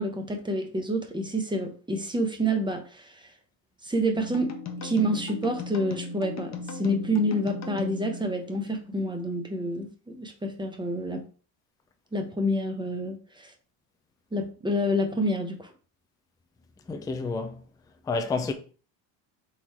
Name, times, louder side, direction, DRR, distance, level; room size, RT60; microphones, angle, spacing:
voice 1, 0.0-3.3 3.8-4.5 4.8-11.2 12.1-13.5 14.3-15.7, equal, 10° right, 0.8 m, -28 dB
sound 1, 4.1-9.0, left 3 dB, 35° left, 0.9 m, -37 dB
voice 2, 16.9-17.6 18.1-18.5, left 3 dB, 10° left, 0.3 m, -29 dB
3.8 x 3.1 x 4.2 m
cardioid pair, 115°, 47 cm